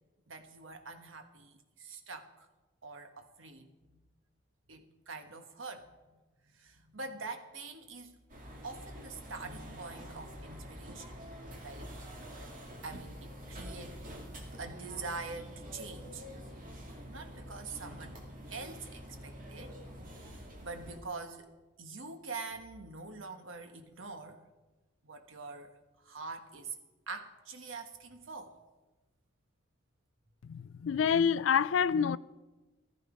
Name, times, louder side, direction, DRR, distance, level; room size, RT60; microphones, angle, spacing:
voice 1, 0.3-2.5 2.8-4.0 4.7-5.9 6.5-8.1 8.6-11.2 11.6-11.9 12.8-14.0 14.6-16.2 17.1-18.2 18.5-21.5 21.8-24.4 25.0-25.7 26.0-26.8 27.1-28.5, right 4 dB, 75° right, 1.4 m, -45 dB
sound 1, 8.3-21.0, equal, 45° right, 2.1 m, -47 dB
voice 2, 30.4-32.2, left 7 dB, 65° left, 0.4 m, -27 dB
15.0 x 13.5 x 5.1 m
head